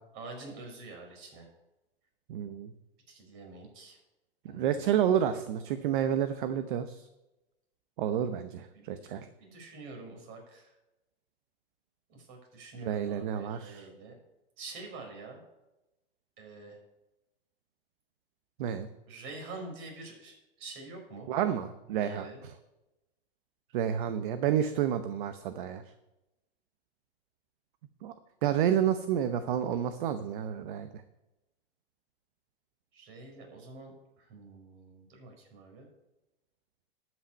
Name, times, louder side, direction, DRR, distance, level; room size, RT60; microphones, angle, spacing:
voice 1, 0.1-1.5 3.1-4.0 4.5-4.8 8.7-10.7 12.1-14.1 14.6-15.4 16.4-16.8 19.1-21.3 21.9-22.4 32.9-33.9 34.2-35.9, right 3 dB, 40° right, 2 dB, 5.1 m, -46 dB
voice 2, 2.3-2.7 4.5-7.1 8.0-9.3 12.8-13.9 18.6-18.9 21.3-22.3 23.7-25.8 28.0-28.1 28.4-30.9, right 9 dB, 55° right, 11 dB, 0.9 m, -30 dB
11.0 x 6.2 x 8.5 m, 0.98 s
hypercardioid pair, 120°, 30 cm